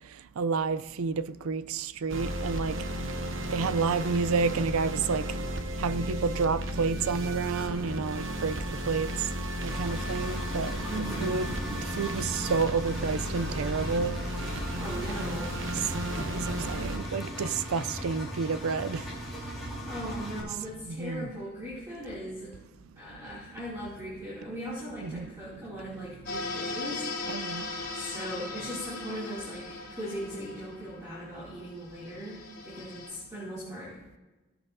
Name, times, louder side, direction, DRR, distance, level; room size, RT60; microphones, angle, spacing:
voice 1, 0.4-2.9 3.2-3.3 3.5-5.3 5.8-8.6 8.9-9.1 9.6-10.8 11.2-14.2 15.7-15.8 16.3-19.0 20.9-21.3 25.0-25.3 27.3-27.7, right 4 dB, 80° right, 0.4 m, -30 dB
sound 1, 2.1-17.0, right 1 dB, 60° right, 0.9 m, -34 dB
Engine, 9.7-20.4, equal, ahead, 2.5 m, -39 dB
voice 2, 10.9-11.3 14.8-15.5 19.9-22.5 23.0-27.4 27.9-34.2, equal, 15° right, 2.6 m, -39 dB
sound 2, 26.2-33.1, left 3 dB, 50° left, 4.1 m, -39 dB
17.0 x 8.8 x 2.7 m
head